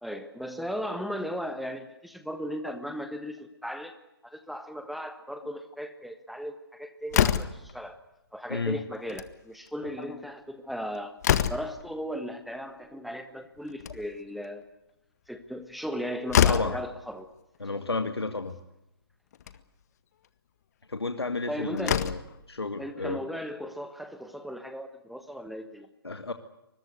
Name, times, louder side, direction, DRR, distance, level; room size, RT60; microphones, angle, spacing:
voice 1, 0.0-3.9 4.2-8.0 8.3-11.2 11.5-14.6 15.3-17.3 21.5-22.0 22.8-25.9, equal, ahead, 9 dB, 1.3 m, -36 dB
Slam, 7.1-7.7 9.0-9.3 9.7-9.8 10.0-10.1 10.7-11.8 13.6-14.3 15.9-16.0 16.3-16.8 17.9-18.0 18.4-18.5 19.3-19.6 21.3-21.4 21.8-22.4, left 9 dB, 40° left, 1.7 m, -25 dB
voice 2, 8.5-8.8 10.0-10.1 16.5-16.8 17.6-18.6 20.9-22.2 22.5-23.2 26.0-26.3, left 3 dB, 85° left, 8 dB, 2.0 m, -31 dB
25.0 x 22.0 x 8.0 m, 0.92 s
figure-of-eight pair, 140°, 13 cm